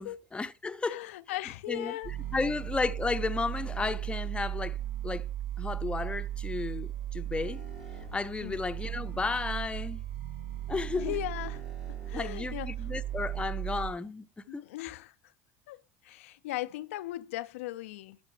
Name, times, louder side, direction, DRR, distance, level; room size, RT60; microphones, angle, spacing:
voice 1, 0.0-1.0 1.7-4.8 5.0-5.3 5.6-7.6 8.1-10.0 10.7-11.1 12.1-14.7, left 4 dB, 15° left, 0.6 m, -33 dB
voice 2, 0.9-2.6 8.4-8.6 10.9-11.6 12.1-12.9 14.5-15.3 15.7-18.2, left 16 dB, 85° left, 0.4 m, -38 dB
sound 1, 2.0-13.9, right 12 dB, 80° right, 3.0 m, -36 dB
13.0 x 5.4 x 3.3 m
supercardioid pair, 90°, 7 cm